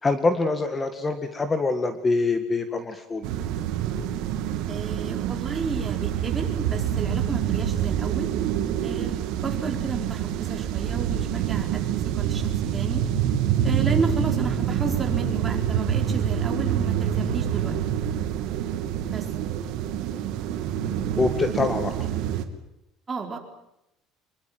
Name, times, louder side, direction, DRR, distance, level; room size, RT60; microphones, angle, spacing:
voice 1, 0.0-3.2 20.1-20.3 21.2-21.9, left 3 dB, 20° left, 8 dB, 2.0 m, -25 dB
sound 1, 3.2-22.4, right 9 dB, 70° right, 3.0 m, -26 dB
voice 2, 4.7-8.3 8.8-9.1 9.4-13.0 13.6-17.8 19.1-19.3 23.1-23.4, right 4 dB, 20° right, 3 dB, 4.7 m, -32 dB
26.5 x 22.0 x 7.7 m, 0.86 s
cardioid pair, 145°, 0 cm